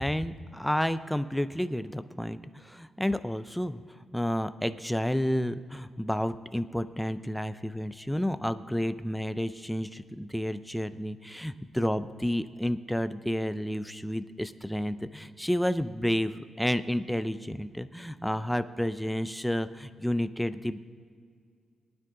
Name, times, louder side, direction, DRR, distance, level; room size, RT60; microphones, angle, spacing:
voice 1, 0.0-3.8 4.1-20.8, equal, ahead, 12 dB, 0.4 m, -30 dB
22.5 x 9.4 x 3.7 m, 2.2 s
wide cardioid pair, 140°, 0 cm